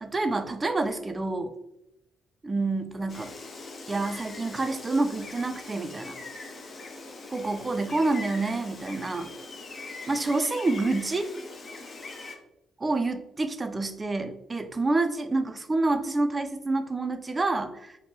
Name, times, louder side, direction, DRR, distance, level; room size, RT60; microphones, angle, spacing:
voice 1, 0.0-1.5 2.4-3.4 3.9-6.2 7.3-9.3 10.1-11.3 12.8-18.0, right 2 dB, 25° right, 8 dB, 0.3 m, -28 dB
Gull seagull, 3.1-12.3, left 3 dB, 45° left, 0.5 m, -42 dB
3.4 x 2.1 x 2.7 m, 0.84 s
cardioid pair, 90°, 0 cm